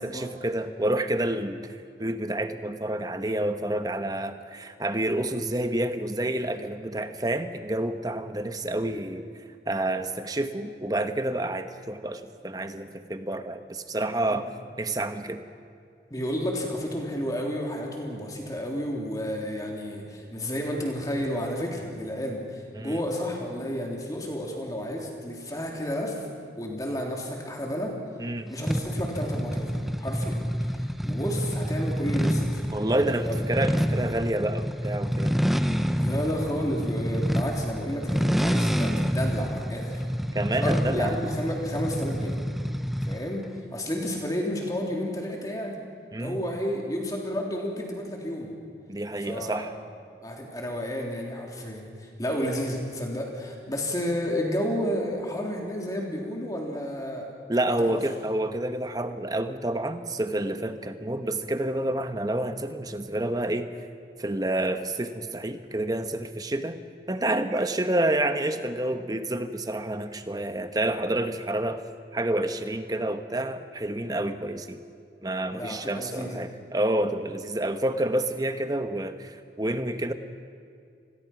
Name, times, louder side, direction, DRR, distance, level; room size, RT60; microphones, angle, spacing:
voice 1, 0.0-9.3 9.7-14.5 14.8-15.4 22.7-23.0 28.2-28.5 32.7-35.4 40.3-41.2 46.1-46.4 48.9-49.7 57.5-63.7 64.2-66.8 67.1-71.8 72.1-74.8 75.2-80.1, right 1 dB, 20° right, 9 dB, 1.1 m, -29 dB
voice 2, 16.1-26.3 26.6-28.0 28.5-32.7 33.2-33.4 36.0-40.0 40.6-42.4 43.0-43.4 43.7-45.8 46.2-48.5 49.2-49.8 50.2-57.3 57.8-58.0 75.5-76.4, equal, 20° left, 0 dB, 3.4 m, -31 dB
sound 1, 28.7-43.3, equal, ahead, 0.7 m, -28 dB
29.0 x 21.5 x 6.0 m, 2.3 s
head